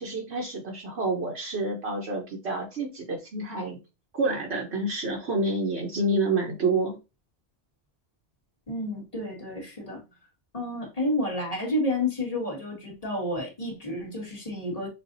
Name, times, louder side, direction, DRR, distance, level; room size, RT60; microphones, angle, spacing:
voice 1, 0.0-3.8 4.1-7.0, right 2 dB, 75° right, 1.3 m, -28 dB
voice 2, 8.7-10.0 10.5-14.9, left 1 dB, 35° left, 2.0 m, -30 dB
6.7 x 2.6 x 2.7 m
omnidirectional pair, 1.1 m